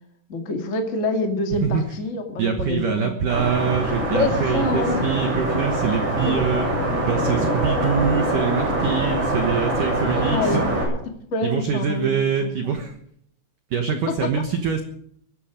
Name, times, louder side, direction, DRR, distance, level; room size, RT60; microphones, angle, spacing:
voice 1, 0.3-3.3 4.1-5.1 6.2-6.4 10.0-10.6 11.3-12.8 14.1-14.2, left 2 dB, 65° left, 4 dB, 0.7 m, -26 dB
voice 2, 1.5-1.8 2.4-6.7 7.1-10.6 11.4-12.9 13.7-14.8, right 7 dB, 80° right, 5 dB, 1.8 m, -24 dB
sound 1, 3.3-10.8, right 1 dB, 45° right, 8.5 m, -24 dB
22.5 x 12.0 x 5.2 m, 0.68 s
omnidirectional pair, 5.8 m